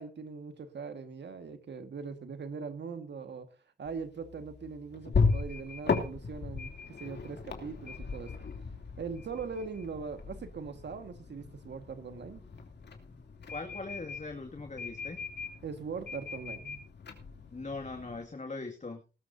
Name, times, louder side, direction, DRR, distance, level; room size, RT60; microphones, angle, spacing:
voice 1, 0.0-3.5 3.8-8.4 9.0-12.4 15.6-16.9, right 5 dB, 80° right, 8 dB, 1.8 m, -41 dB
sound 1, 3.8-18.2, left 4 dB, 70° left, 2.9 m, -36 dB
voice 2, 13.5-15.2 17.5-19.0, left 3 dB, 40° left, 4 dB, 2.2 m, -40 dB
19.0 x 13.5 x 2.7 m, 0.34 s
cardioid pair, 50°, 18 cm